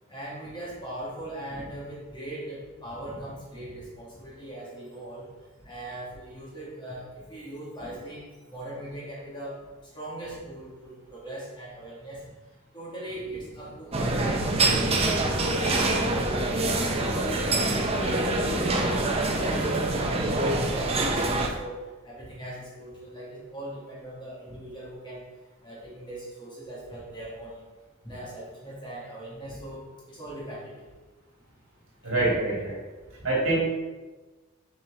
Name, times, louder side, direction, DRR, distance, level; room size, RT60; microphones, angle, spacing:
voice 1, 0.1-5.3 5.6-9.6 9.9-12.2 12.7-16.7 17.1-20.2 20.5-21.7 22.0-25.2 25.6-27.6 28.0-30.8 32.3-32.4, right 1 dB, 20° left, -7 dB, 2.1 m, -40 dB
sound 1, 13.9-21.5, right 2 dB, 25° right, 0.6 m, -25 dB
voice 2, 32.0-32.8 33.2-33.6, right 2 dB, 60° right, -4 dB, 2.0 m, -25 dB
7.3 x 4.5 x 3.7 m, 1.2 s
head